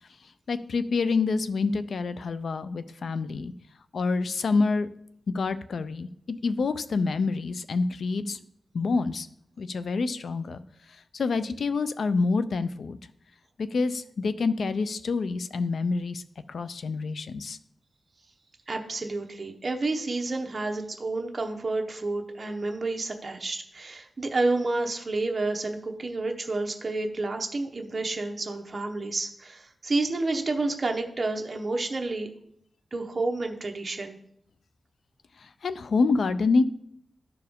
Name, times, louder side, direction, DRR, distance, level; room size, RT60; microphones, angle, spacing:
voice 1, 0.5-3.5 3.9-4.9 5.3-8.4 8.7-9.3 9.6-10.6 11.1-13.0 13.6-16.2 16.5-17.6 35.4-36.6, left 4 dB, 80° left, 12 dB, 0.4 m, -27 dB
voice 2, 18.7-32.3 32.9-34.2, right 2 dB, 40° right, 3 dB, 0.9 m, -30 dB
12.5 x 4.6 x 3.6 m, 0.72 s
wide cardioid pair, 90°, 0 cm